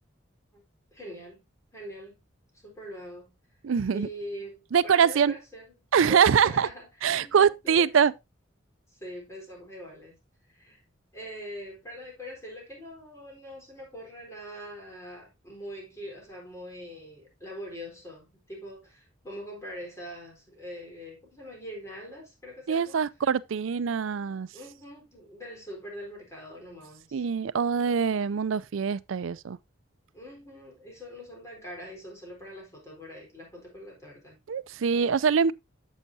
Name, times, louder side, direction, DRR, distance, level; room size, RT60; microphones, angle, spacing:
voice 1, 0.9-1.4 1.7-2.2 2.5-3.3 3.9-5.7 6.1-7.9 8.9-10.2 10.5-10.8 11.1-23.0 24.5-27.2 30.1-34.4, equal, 15° left, 4.0 m, -43 dB
voice 2, 3.6-4.1 4.7-5.3 5.9-6.7 7.0-8.1 22.7-24.5 27.1-29.6 34.5-35.5, right 7 dB, 85° right, 0.4 m, -24 dB
10.0 x 7.2 x 2.7 m
head